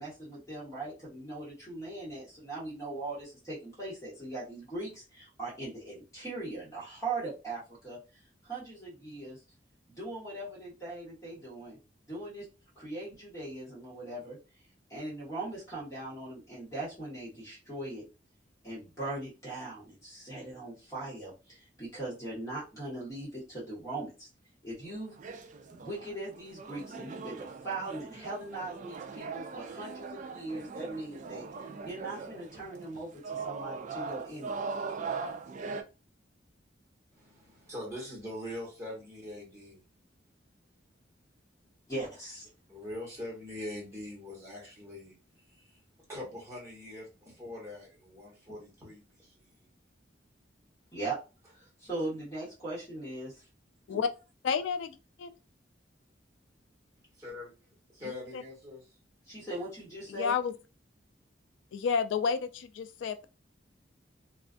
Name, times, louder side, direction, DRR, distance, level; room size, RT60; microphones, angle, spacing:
voice 1, 0.0-8.0 8.4-9.4 9.9-11.8 12.1-12.5 12.7-14.4 14.9-18.0 18.6-24.3 24.6-25.1 25.7-31.4 31.8-34.7 41.9-42.5 50.9-51.2 51.5-53.4 53.9-54.0 59.3-60.4, right 2 dB, 15° left, 1.3 m, -40 dB
sound 1, 24.9-35.8, right 4 dB, 40° right, 0.3 m, -40 dB
voice 2, 37.2-39.8 42.7-45.8 46.1-49.7 57.2-57.5 57.9-58.9, left 1 dB, 15° right, 1.2 m, -43 dB
voice 3, 54.4-55.3 58.3-58.4 60.1-60.5 61.7-63.3, left 6 dB, 80° left, 0.3 m, -30 dB
2.5 x 2.4 x 2.4 m
head